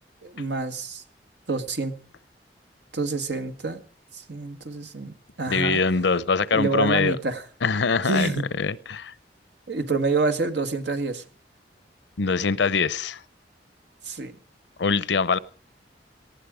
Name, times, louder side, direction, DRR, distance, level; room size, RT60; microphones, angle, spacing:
voice 1, 0.2-1.0 1.5-1.9 2.9-3.8 4.1-5.8 6.5-7.4 8.1-8.5 9.7-11.2 14.0-14.4, right 3 dB, 75° right, 1.6 m, -27 dB
voice 2, 5.5-7.2 7.6-8.3 8.6-9.1 12.2-13.2 14.8-15.4, left 4 dB, 85° left, 0.7 m, -23 dB
18.5 x 15.0 x 5.0 m
head